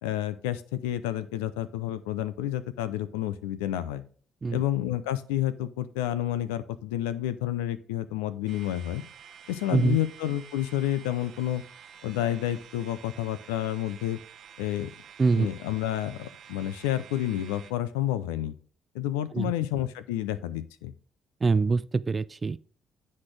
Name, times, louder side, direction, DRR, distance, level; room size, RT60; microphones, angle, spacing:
voice 1, 0.0-4.0 4.5-9.0 9.5-11.6 12.0-14.2 14.6-14.9 15.4-18.5 18.9-20.9, left 12 dB, 90° left, 0.4 m, -30 dB
sound 1, 8.5-17.7, right 8 dB, 65° right, 0.9 m, -50 dB
voice 2, 15.2-15.5 19.3-19.5 21.4-22.6, right 4 dB, 35° right, 0.4 m, -24 dB
9.6 x 4.3 x 3.2 m
hypercardioid pair, 60°, 0 cm